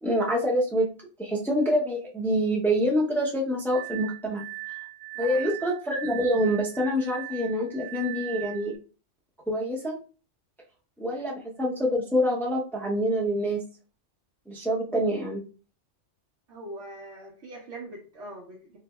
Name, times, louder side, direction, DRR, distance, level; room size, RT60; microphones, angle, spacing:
voice 1, 0.0-0.9 1.2-4.8 5.2-8.8 9.5-10.0 11.0-13.6 14.5-15.4, equal, ahead, -2 dB, 0.5 m, -26 dB
Glass, 3.7-8.8, right 25 dB, 60° right, 0.5 m, -39 dB
voice 2, 5.1-5.5 16.5-18.8, right 1 dB, 80° right, -4 dB, 1.3 m, -42 dB
3.9 x 3.2 x 2.3 m, 0.35 s
omnidirectional pair, 1.2 m